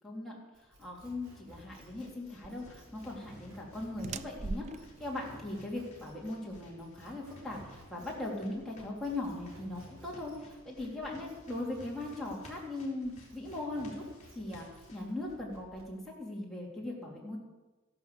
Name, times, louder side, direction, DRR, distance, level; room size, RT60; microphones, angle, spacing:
voice 1, 0.0-0.4 0.7-14.0 14.3-17.4, left 2 dB, ahead, -5 dB, 3.6 m, -39 dB
sound 1, 0.5-12.7 13.0-15.9, right 1 dB, 75° right, 6.3 m, -56 dB
sound 2, 1.6-15.0, left 1 dB, 35° left, 4.4 m, -59 dB
sound 3, 2.4-8.5, right 3 dB, 35° right, 0.4 m, -45 dB
15.0 x 12.0 x 7.0 m, 1.1 s
head